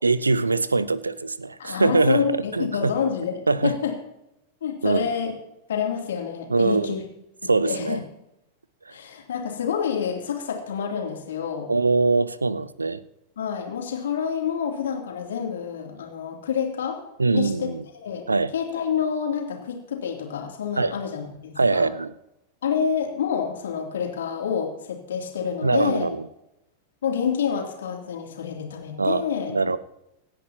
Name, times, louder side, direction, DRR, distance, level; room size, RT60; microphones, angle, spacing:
voice 1, 0.0-2.9 3.5-3.7 4.8-5.1 6.5-7.0 7.5-8.0 11.7-13.0 17.2-17.8 18.3-18.5 20.8-20.9 21.6-22.1 25.6-26.2 29.0-29.2 29.5-29.8, right 3 dB, 80° right, 18 dB, 0.7 m, -22 dB
voice 2, 1.6-3.9 4.6-5.3 5.7-7.0 7.4-8.0 8.9-11.7 13.4-17.0 17.3-17.7 17.9-18.2 18.5-21.9 22.6-26.1 27.0-29.5, left 7 dB, 65° left, 1 dB, 3.1 m, -28 dB
26.5 x 9.9 x 3.0 m, 0.85 s
figure-of-eight pair, 90°, 0 cm